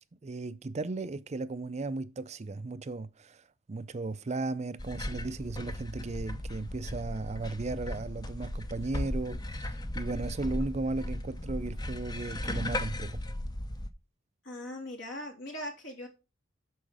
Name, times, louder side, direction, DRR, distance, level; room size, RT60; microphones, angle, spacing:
voice 1, 0.2-13.2, right 3 dB, 35° right, 0.5 m, -36 dB
sound 1, 4.8-13.9, left 1 dB, 20° left, 0.6 m, -36 dB
voice 2, 14.4-16.1, left 1 dB, 70° left, 3.4 m, -40 dB
8.9 x 6.3 x 4.9 m
head